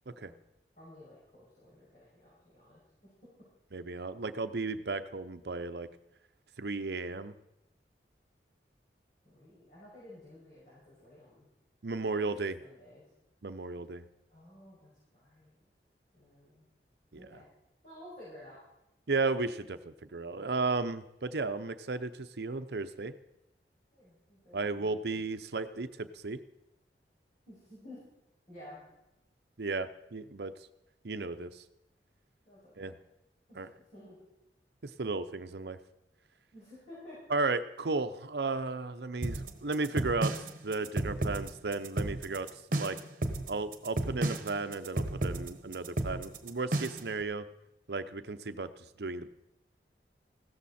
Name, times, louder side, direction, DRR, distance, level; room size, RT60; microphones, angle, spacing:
voice 1, 0.8-3.1 9.2-11.5 12.0-12.2 12.6-13.0 14.3-15.7 16.1-16.7 17.2-17.5 17.8-18.6 23.9-25.2 27.5-28.0 28.5-28.8 32.5-33.0 33.5-34.2 36.5-37.2, left 1 dB, 45° left, -9 dB, 6.5 m, -53 dB
voice 2, 3.7-5.9 6.6-7.3 11.8-12.6 13.4-14.0 17.1-17.2 19.1-23.1 24.5-26.4 29.6-30.5 31.0-31.6 32.8-32.9 33.6-33.7 34.8-35.8 37.3-43.0 43.5-47.5 47.9-48.7 49.0-49.3, right 3 dB, 70° right, 11 dB, 0.7 m, -34 dB
sound 1, 39.2-47.1, right 1 dB, 50° right, 1.2 m, -33 dB
16.0 x 13.5 x 4.3 m, 0.89 s
head